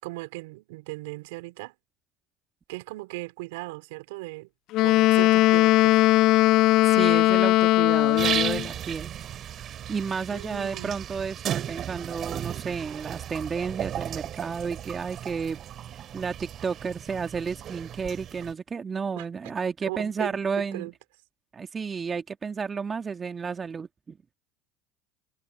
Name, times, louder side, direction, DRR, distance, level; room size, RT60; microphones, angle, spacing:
voice 1, 0.0-1.7 2.7-4.5 4.8-6.0 10.3-11.0 19.2-19.3 19.8-20.9, right 23 dB, 75° right, 4.5 m, -38 dB
Wind instrument woodwind instrument, 4.7-8.7, left 17 dB, 60° left, 0.4 m, -19 dB
voice 2, 6.9-9.1 9.9-15.6 15.9-20.9 21.5-24.2, right 5 dB, 30° right, 1.6 m, -32 dB
sound 1, 8.2-18.5, right 10 dB, 45° right, 3.4 m, -35 dB
hypercardioid pair, 80°, 0 cm